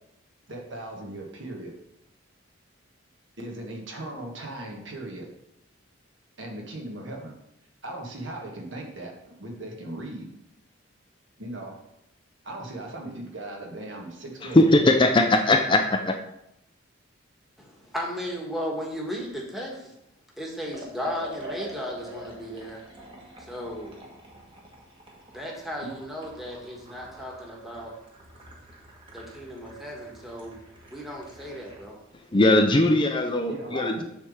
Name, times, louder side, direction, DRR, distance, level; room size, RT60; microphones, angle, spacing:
voice 1, 0.5-1.7 3.4-5.3 6.4-7.3 7.8-10.3 11.4-11.8 12.4-14.7 25.8-25.9 33.5-34.0, right 1 dB, 65° right, 0 dB, 1.5 m, -38 dB
voice 2, 14.4-16.2 32.3-34.0, left 2 dB, 25° left, 5 dB, 0.4 m, -20 dB
voice 3, 17.6-19.9 20.4-22.8 23.4-24.0 25.3-27.9 29.1-30.6 30.9-32.0, equal, ahead, -2 dB, 1.3 m, -35 dB
Liquid, 20.7-31.9, equal, 25° right, 1.3 m, -45 dB
7.1 x 3.4 x 6.3 m, 0.81 s
head